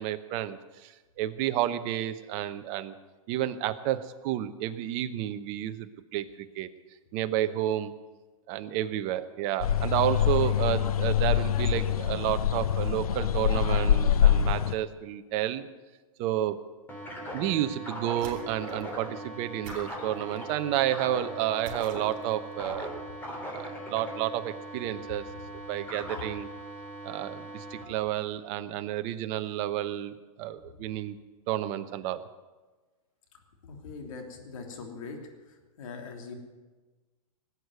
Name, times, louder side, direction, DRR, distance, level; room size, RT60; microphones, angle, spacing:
voice 1, 0.0-2.9 3.3-6.7 7.1-7.9 8.5-15.7 16.2-16.6 17.3-22.9 23.5-25.2 25.7-26.5 27.0-31.2 31.5-32.3, right 12 dB, 40° right, 10 dB, 0.9 m, -31 dB
sound 1, 9.6-14.8, left 9 dB, 85° left, 0.7 m, -25 dB
sound 2, 16.9-27.8, right 1 dB, 10° left, 3.6 m, -40 dB
sound 3, 18.1-18.9 19.6-20.6 21.6-22.5, right 4 dB, 60° right, 3.9 m, -47 dB
voice 2, 33.6-35.2 35.5-36.3, left 4 dB, 65° left, 3 dB, 3.1 m, -42 dB
19.5 x 8.3 x 8.0 m, 1.2 s
hypercardioid pair, 135°, 18 cm